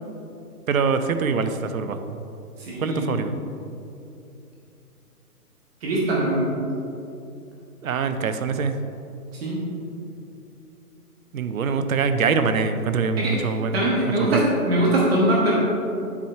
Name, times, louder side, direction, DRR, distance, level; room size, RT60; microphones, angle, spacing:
voice 1, 0.7-2.1 2.8-3.4 7.8-8.8 11.3-14.4, right 5 dB, 60° right, 9 dB, 0.6 m, -24 dB
voice 2, 2.6-3.1 5.8-6.5 9.3-9.6 13.2-13.3 13.7-15.5, right 1 dB, 40° right, -5 dB, 1.6 m, -22 dB
7.7 x 4.4 x 4.6 m, 2.7 s
hypercardioid pair, 145°, 46 cm